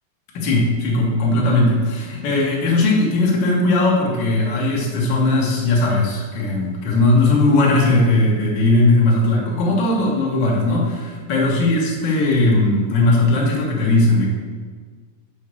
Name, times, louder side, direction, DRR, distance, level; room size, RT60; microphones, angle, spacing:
voice 1, 0.3-14.3, left 2 dB, 65° left, -3 dB, 1.1 m, -18 dB
5.6 x 4.3 x 6.2 m, 1.5 s
omnidirectional pair, 4.1 m